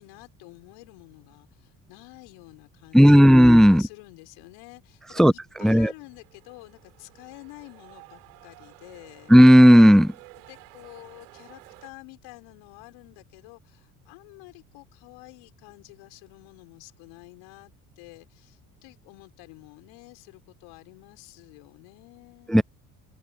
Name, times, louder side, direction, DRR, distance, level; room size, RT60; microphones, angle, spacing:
voice 1, 0.0-9.3 10.5-22.6, left 27 dB, 70° left, 5.6 m, -49 dB
voice 2, 2.9-3.8 5.2-5.3 5.6-5.9 9.3-10.1 22.5-22.6, equal, ahead, 0.5 m, -12 dB
sound 1, 5.8-11.9, right 29 dB, 75° right, 5.0 m, -52 dB
hypercardioid pair, 65°, 44 cm